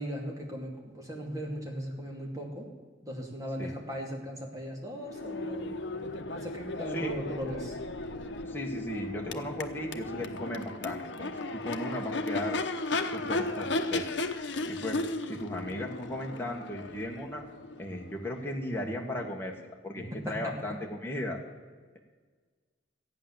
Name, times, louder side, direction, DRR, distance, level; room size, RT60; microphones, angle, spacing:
voice 1, 0.0-2.7 3.0-5.7 6.3-7.8 20.0-20.8, equal, 15° right, -1 dB, 2.6 m, -38 dB
Crowd / Race car auto racing / Accelerating revving vroom, 5.0-18.8, left 2 dB, 70° left, 0.9 m, -35 dB
voice 2, 8.4-12.6 13.1-14.0 14.7-15.0 15.3-17.5 17.8-19.5 19.8-21.4, left 1 dB, 10° left, -1 dB, 1.6 m, -36 dB
14.0 x 9.3 x 7.2 m, 1.5 s
head